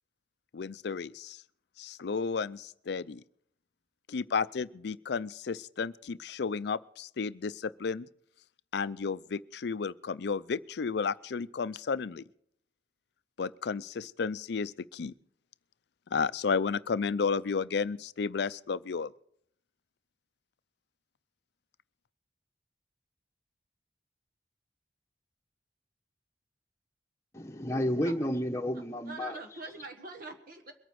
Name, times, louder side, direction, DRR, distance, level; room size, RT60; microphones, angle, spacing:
voice 1, 0.5-1.4 1.8-3.2 4.1-8.1 8.7-12.2 13.4-15.1 16.1-19.1, left 5 dB, 65° left, 0.5 m, -32 dB
voice 2, 27.3-29.4, equal, 15° left, 1.1 m, -31 dB
voice 3, 29.0-30.7, right 3 dB, 55° right, 1.4 m, -44 dB
22.5 x 9.2 x 4.8 m
head